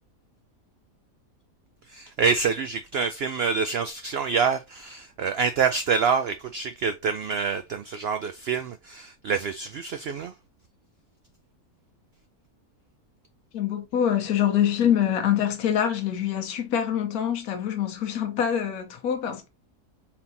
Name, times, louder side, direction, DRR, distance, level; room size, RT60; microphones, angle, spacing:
voice 1, 1.9-10.3, right 5 dB, 75° right, 0.5 m, -26 dB
voice 2, 13.5-19.5, left 9 dB, 80° left, 1.3 m, -25 dB
4.5 x 3.5 x 2.7 m
omnidirectional pair, 1.6 m